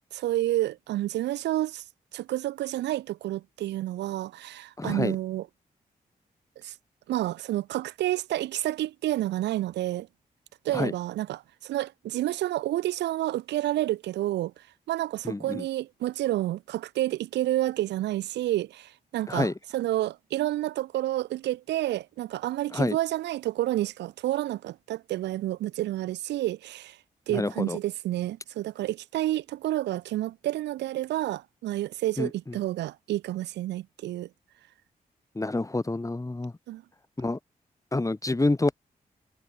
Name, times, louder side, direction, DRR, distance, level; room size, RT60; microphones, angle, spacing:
voice 1, 0.1-1.8 2.1-5.5 6.6-6.7 7.1-10.1 10.6-27.0 27.3-34.3 36.7-36.8, right 15 dB, 90° right, 0.6 m, -29 dB
voice 2, 4.8-5.1 10.7-10.9 15.2-15.7 19.3-19.5 22.7-23.0 27.3-27.8 32.2-32.3 35.3-36.5 37.2-37.4 37.9-38.7, left 2 dB, 20° left, 1.0 m, -27 dB
supercardioid pair, 40°, 17 cm